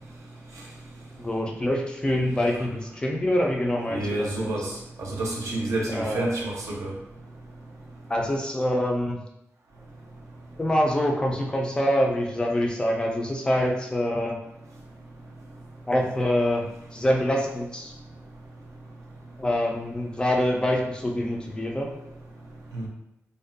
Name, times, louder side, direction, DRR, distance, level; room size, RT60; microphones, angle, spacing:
voice 1, 1.2-4.5 5.9-6.3 8.1-9.2 10.6-14.4 15.9-16.7 16.9-17.9 19.4-21.9, left 1 dB, 15° left, 0 dB, 0.3 m, -25 dB
voice 2, 3.9-6.9 22.7-22.9, right 2 dB, 80° right, -2 dB, 0.6 m, -29 dB
2.4 x 2.1 x 2.5 m, 0.84 s
wide cardioid pair, 165°, 5 cm